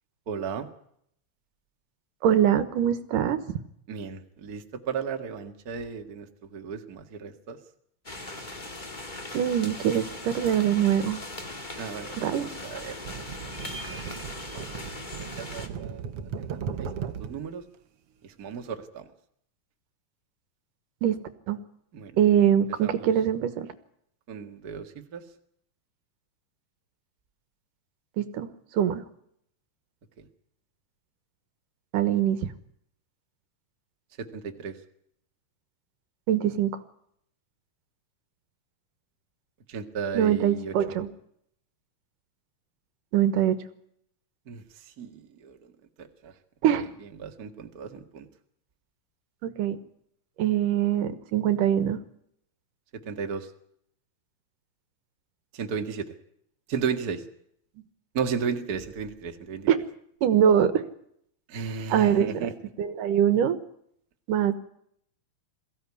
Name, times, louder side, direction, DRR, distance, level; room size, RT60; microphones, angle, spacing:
voice 1, 0.3-0.7 3.9-6.3 6.5-7.6 11.8-13.0 13.4-13.8 14.5-14.8 15.2-16.0 16.4-17.6 18.2-19.0 21.9-22.1 22.8-23.1 24.3-25.2 30.2-30.3 34.2-34.7 39.7-40.7 44.5-44.6 45.0-45.6 46.0-46.3 47.2-48.3 53.1-53.5 55.5-56.1 56.7-57.2 58.1-59.7 61.5-62.5, right 6 dB, 35° right, 5 dB, 1.7 m, -34 dB
voice 2, 2.2-3.4 9.3-11.2 12.2-12.5 21.0-21.2 21.5-21.6 22.2-23.7 28.2-28.5 28.7-29.0 31.9-32.4 36.3-36.8 40.1-41.1 43.1-43.6 46.6-46.9 49.4-49.8 50.4-52.0 59.7-59.8 60.2-60.8 61.9-62.5 62.8-63.6 64.3-64.5, right 9 dB, 75° right, 12 dB, 2.8 m, -23 dB
sound 1, 8.0-15.7, left 2 dB, 20° left, 1.6 m, -39 dB
sound 2, 13.0-17.5 18.5-18.7, right 7 dB, 60° right, 1.6 m, -37 dB
22.5 x 16.0 x 9.7 m, 0.71 s
omnidirectional pair, 3.9 m